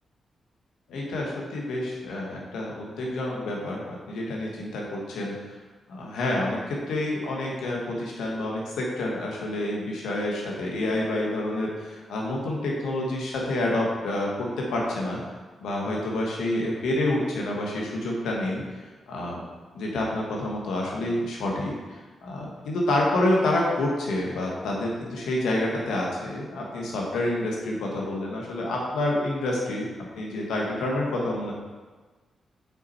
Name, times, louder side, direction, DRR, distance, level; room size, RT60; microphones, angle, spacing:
voice 1, 0.9-5.5 5.9-15.2 15.6-19.4 19.7-29.9 30.2-31.5, left 1 dB, 85° left, -2 dB, 1.3 m, -28 dB
5.9 x 4.1 x 4.3 m, 1.3 s
cardioid pair, 65°, 0 cm